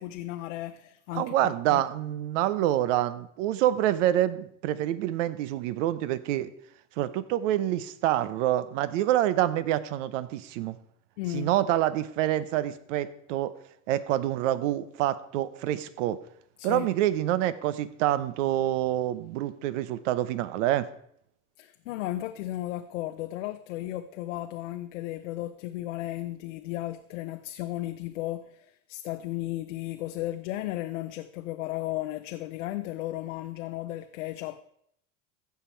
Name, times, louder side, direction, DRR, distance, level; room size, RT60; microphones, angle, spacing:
voice 1, 0.0-1.8 11.2-11.5 16.6-16.9 21.6-34.6, left 15 dB, 90° left, 0.7 m, -35 dB
voice 2, 1.1-6.5 7.0-10.8 11.3-13.5 13.9-16.2 16.6-20.9, right 13 dB, 85° right, 0.9 m, -27 dB
15.5 x 5.8 x 4.6 m
supercardioid pair, 110°, 36 cm